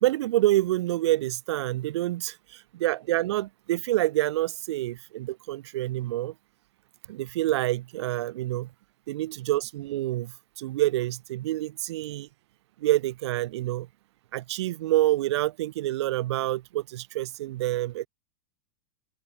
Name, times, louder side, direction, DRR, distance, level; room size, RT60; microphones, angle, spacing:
voice 1, 0.0-6.3 7.1-8.7 9.1-12.3 12.8-13.9 14.3-18.1, right 15 dB, 70° right, 1.6 m, -27 dB
open air
supercardioid pair, 145°, 15 cm